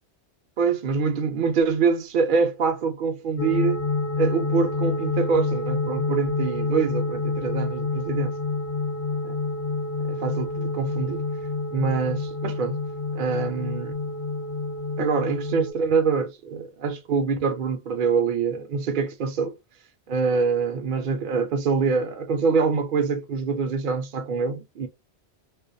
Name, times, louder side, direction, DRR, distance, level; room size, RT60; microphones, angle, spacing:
voice 1, 0.6-3.9 4.2-8.3 9.2-9.4 10.1-11.2 11.7-12.8 13.1-13.9 15.0-19.6 20.1-24.9, right 5 dB, 60° right, 0.6 m, -25 dB
sound 1, 3.4-15.7, left 3 dB, 55° left, 0.6 m, -28 dB
2.3 x 2.2 x 2.5 m
omnidirectional pair, 1.1 m